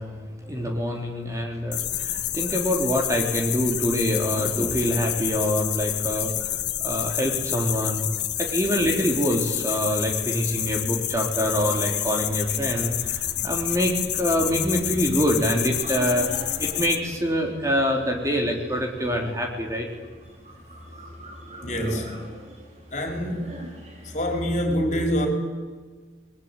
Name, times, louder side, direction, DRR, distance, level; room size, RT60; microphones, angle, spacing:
voice 1, 0.0-8.1 8.4-19.9, equal, 15° right, 1 dB, 3.7 m, -25 dB
sound 1, 1.7-17.0, left 12 dB, 75° left, 1.6 m, -28 dB
sound 2, 11.4-24.2, equal, 40° right, 5.6 m, -44 dB
voice 2, 21.6-22.1 22.9-23.4 24.1-25.3, equal, 40° left, 2 dB, 5.4 m, -25 dB
29.5 x 22.0 x 9.1 m, 1.4 s
head